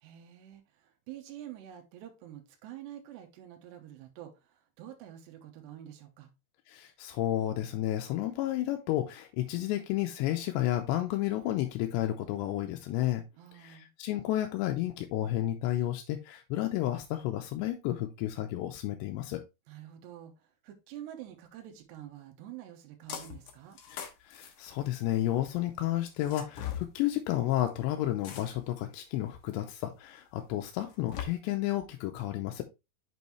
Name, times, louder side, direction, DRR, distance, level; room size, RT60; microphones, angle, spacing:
voice 1, 0.0-6.3 13.4-13.9 19.7-23.8, right 11 dB, 85° right, 4 dB, 3.1 m, -47 dB
voice 2, 6.7-13.2 13.6-19.4 23.9-32.6, left 14 dB, 90° left, 4 dB, 2.9 m, -31 dB
sound 1, 23.1-23.5 23.8-25.3 26.2-26.9 28.2-28.8 29.5-29.6 30.7-31.2, left 9 dB, 65° left, 2.0 m, -40 dB
7.1 x 5.5 x 3.1 m, 0.24 s
omnidirectional pair, 4.9 m